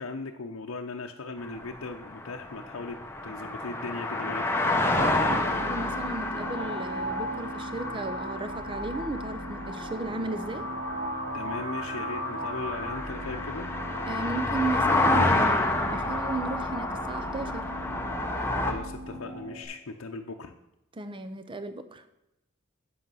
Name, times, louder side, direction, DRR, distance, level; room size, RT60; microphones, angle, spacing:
voice 1, 0.0-4.4 11.3-13.7 18.6-20.5, left 3 dB, 80° left, 3 dB, 0.7 m, -38 dB
sound 1, 1.4-18.7, left 2 dB, 10° left, 1.0 m, -29 dB
sound 2, 4.7-19.7, equal, 60° right, 4.1 m, -37 dB
voice 2, 5.0-10.7 14.1-17.7 21.0-22.0, right 3 dB, 25° right, 10 dB, 0.6 m, -35 dB
8.5 x 7.7 x 5.5 m, 0.88 s
head